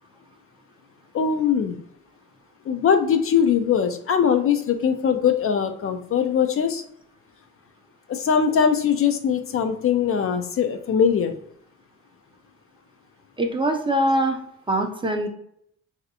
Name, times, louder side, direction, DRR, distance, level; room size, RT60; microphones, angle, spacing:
voice 1, 1.1-1.8 2.7-6.8 8.1-11.3, left 7 dB, 50° left, 7 dB, 0.4 m, -21 dB
voice 2, 13.4-14.4 14.7-15.3, right 1 dB, 15° right, 3 dB, 0.5 m, -22 dB
3.1 x 2.7 x 2.6 m, 0.70 s
cardioid pair, 90°, 30 cm